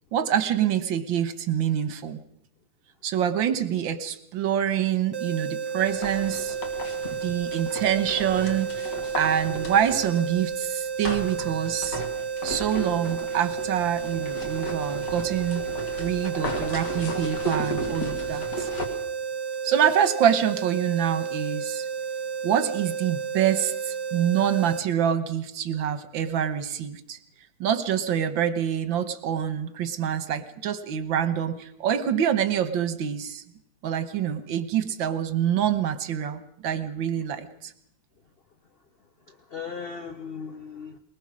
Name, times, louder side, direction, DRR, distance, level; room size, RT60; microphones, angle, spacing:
voice 1, 0.1-2.2 3.0-6.6 7.2-8.9 9.2-12.0 12.4-15.6 16.0-18.7 19.6-21.9 22.4-27.2 27.6-33.4 33.8-37.7, right 9 dB, 85° right, 11 dB, 1.8 m, -26 dB
sound 1, 5.1-24.8, right 6 dB, 45° right, 0.9 m, -32 dB
sound 2, 5.8-10.4 11.0-18.9, equal, 60° left, 2.9 m, -35 dB
voice 2, 7.0-7.6 15.7-15.8 39.3-41.0, left 5 dB, 40° left, 7 dB, 0.9 m, -38 dB
21.0 x 19.5 x 6.2 m, 0.73 s
omnidirectional pair, 2.1 m